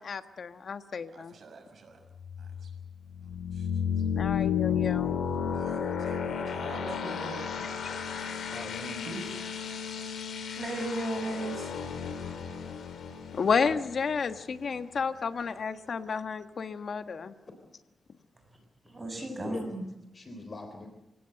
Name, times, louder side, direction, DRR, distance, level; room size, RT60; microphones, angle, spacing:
voice 1, 0.0-1.3 4.1-5.2 13.3-17.3, left 5 dB, 60° left, 1.3 m, -31 dB
voice 2, 1.1-2.0 2.4-2.7 3.5-3.7 5.5-7.5 8.3-8.5 9.0-9.4, right 3 dB, 70° right, 6.3 m, -45 dB
sound 1, 2.2-14.8, left 7 dB, 85° left, 3.7 m, -33 dB
voice 3, 8.5-9.1 15.8-15.9 17.4-17.5 19.2-19.7 20.1-20.9, left 2 dB, 40° left, 3.6 m, -42 dB
voice 4, 10.6-11.7 18.9-19.8, right 1 dB, 20° right, 7.0 m, -34 dB
28.0 x 17.0 x 7.7 m
cardioid pair, 90°, 0 cm